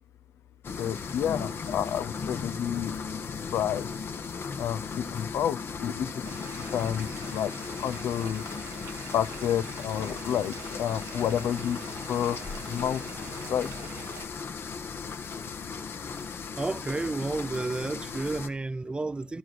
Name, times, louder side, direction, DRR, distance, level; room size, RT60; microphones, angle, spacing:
sound 1, 0.6-18.5, left 5 dB, 60° left, 1.0 m, -37 dB
voice 1, 0.8-3.0 3.5-3.9 4.6-6.1 6.7-7.5 7.8-8.4 9.1-11.8 12.1-12.4 12.7-13.0 13.5-13.7, left 9 dB, 75° left, 0.4 m, -29 dB
Bathtub (filling or washing), 6.2-14.2, right 10 dB, 85° right, 0.8 m, -46 dB
voice 2, 16.6-19.4, right 3 dB, 20° right, 0.5 m, -31 dB
12.0 x 4.6 x 6.2 m
supercardioid pair, 55°, 5 cm